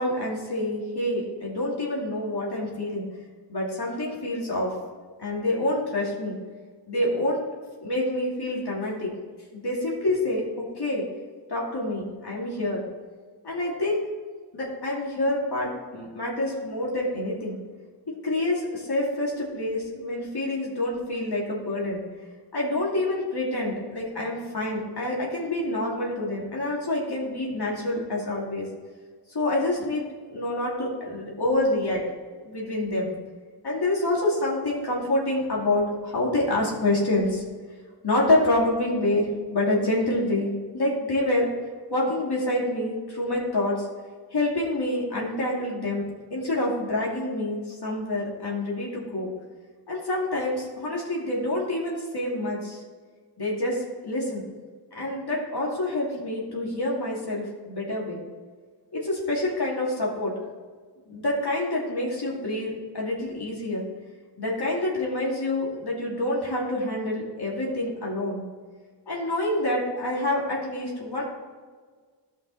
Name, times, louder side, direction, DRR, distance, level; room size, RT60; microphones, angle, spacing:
voice 1, 0.0-3.1 3.5-4.7 5.2-6.4 6.9-7.4 7.8-9.1 9.5-11.1 11.5-12.8 13.4-14.0 14.5-17.6 18.2-22.0 22.5-28.7 29.3-32.0 32.4-33.1 33.6-37.4 38.0-41.5 41.9-43.9 44.3-49.3 49.9-52.8 53.4-54.4 54.9-58.2 58.9-60.3 61.0-63.8 64.4-68.4 69.1-71.2, left 1 dB, 65° left, -4 dB, 2.8 m, -27 dB
15.0 x 5.5 x 4.2 m, 1.5 s
wide cardioid pair, 75°, 43 cm